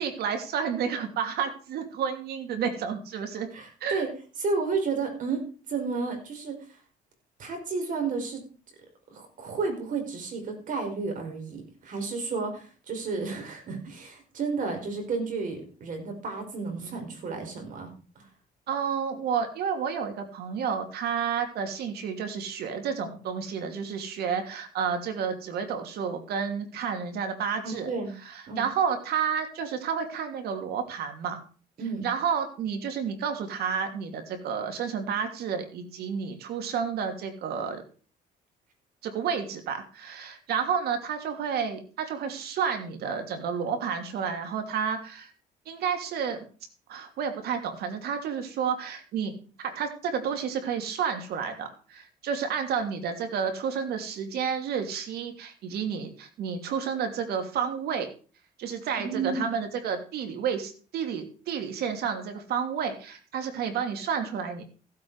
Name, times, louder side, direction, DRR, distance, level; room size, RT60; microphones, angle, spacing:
voice 1, 0.0-3.5 3.8-4.0 18.7-27.9 28.3-31.4 32.0-37.8 39.0-45.3 45.7-46.5 46.9-49.3 49.6-58.1 58.6-64.6, right 7 dB, 70° right, 6 dB, 2.9 m, -30 dB
voice 2, 3.5-4.1 4.4-6.6 7.4-8.4 9.1-17.9 18.1-18.2 27.6-28.1 28.5-28.6 31.8-32.1 59.0-59.4, right 4 dB, 50° right, 4 dB, 5.1 m, -32 dB
15.0 x 8.5 x 4.9 m, 0.38 s
cardioid pair, 110°, 17 cm